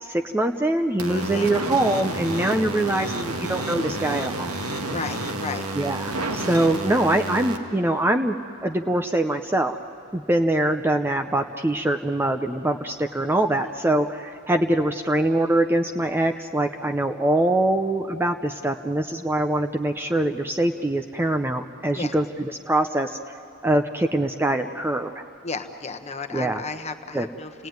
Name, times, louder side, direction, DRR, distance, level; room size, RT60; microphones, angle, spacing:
voice 1, 0.0-4.5 5.8-8.4 8.6-9.8 10.1-23.2 23.6-25.1 26.3-26.6 27.1-27.3, right 1 dB, 10° right, 5 dB, 0.6 m, -23 dB
sound 1, 1.0-7.6, right 2 dB, 85° right, 1.9 m, -30 dB
voice 2, 1.1-1.5 4.9-5.7 13.6-13.7 21.9-22.1 25.4-27.7, left 4 dB, 30° left, 7 dB, 1.1 m, -34 dB
29.5 x 18.5 x 9.4 m, 2.6 s
head